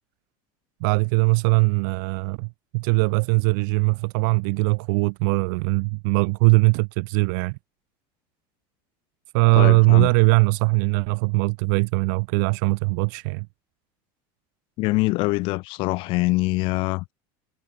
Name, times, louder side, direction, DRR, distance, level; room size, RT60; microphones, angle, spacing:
voice 1, 0.8-2.5 2.7-7.6 9.3-13.5, right 32 dB, 70° right, 1.0 m, -20 dB
voice 2, 9.6-10.1 14.8-17.1, left 22 dB, 55° left, 2.2 m, -24 dB
cardioid pair, 155°, 11 cm